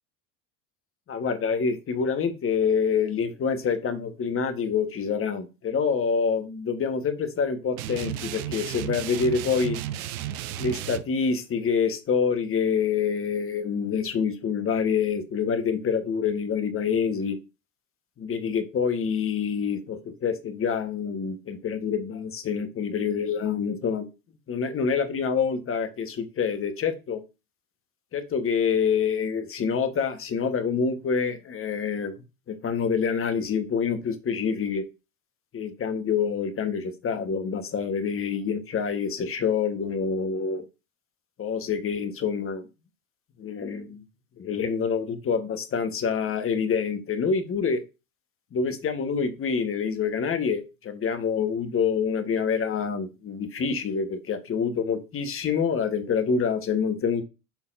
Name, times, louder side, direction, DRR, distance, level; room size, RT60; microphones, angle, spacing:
voice 1, 1.1-9.8 10.6-17.4 18.2-24.1 24.5-27.2 28.1-32.1 32.5-34.8 35.5-40.6 41.4-42.6 43.4-44.0 44.4-47.8 48.5-57.2, left 6 dB, 30° left, 8 dB, 1.3 m, -26 dB
sound 1, 7.8-11.0, right 12 dB, 75° right, 0.7 m, -33 dB
11.5 x 3.9 x 2.6 m, 0.29 s
hypercardioid pair, 85°, 43 cm